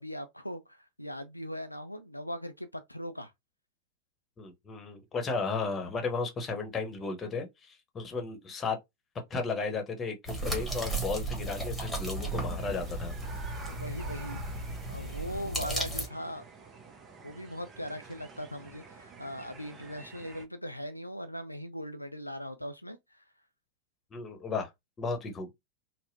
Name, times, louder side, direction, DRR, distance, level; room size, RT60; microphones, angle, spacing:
voice 1, 0.0-3.3 13.7-14.4 14.9-16.4 17.2-23.2, equal, 90° left, 0.4 m, -40 dB
voice 2, 4.4-8.8 9.3-13.2 24.1-24.7 25.0-25.5, left 4 dB, 20° left, 1.0 m, -34 dB
sound 1, 10.2-16.1, right 1 dB, 5° left, 1.3 m, -35 dB
sound 2, 12.2-20.4, right 4 dB, 25° right, 0.7 m, -49 dB
4.0 x 2.1 x 2.6 m
figure-of-eight pair, 90°, 0 cm